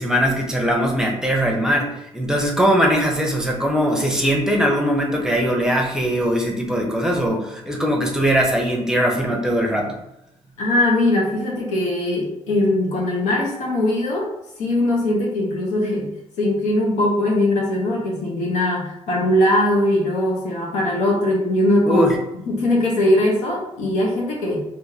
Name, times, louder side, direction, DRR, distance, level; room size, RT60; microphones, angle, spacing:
voice 1, 0.0-10.0 21.9-22.2, equal, 5° right, 0 dB, 0.7 m, -20 dB
voice 2, 10.6-14.3 14.6-16.1 16.4-22.1 22.5-24.6, left 1 dB, 85° left, -2 dB, 1.0 m, -20 dB
3.7 x 2.6 x 2.8 m, 0.83 s
cardioid pair, 90°, 12 cm